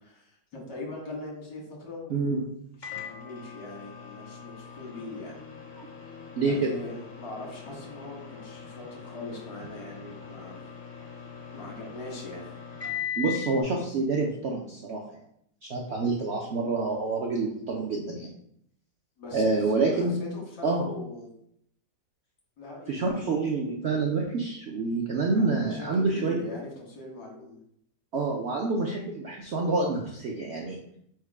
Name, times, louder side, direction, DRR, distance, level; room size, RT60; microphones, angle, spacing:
voice 1, 0.0-2.4 2.8-5.4 6.4-10.6 11.5-12.5 19.2-19.7 20.0-21.3 22.6-23.3 25.3-27.6, left 2 dB, 90° left, -2 dB, 1.9 m, -41 dB
voice 2, 2.1-2.4 5.8-5.9 6.4-6.7 13.2-15.2 15.6-18.3 19.3-20.2 20.6-20.9 22.9-26.4 28.1-30.8, right 3 dB, 75° right, -1 dB, 0.6 m, -27 dB
Microwave oven, 2.8-13.6, left 8 dB, 65° left, 0.4 m, -40 dB
4.6 x 2.2 x 4.6 m, 0.70 s
omnidirectional pair, 1.8 m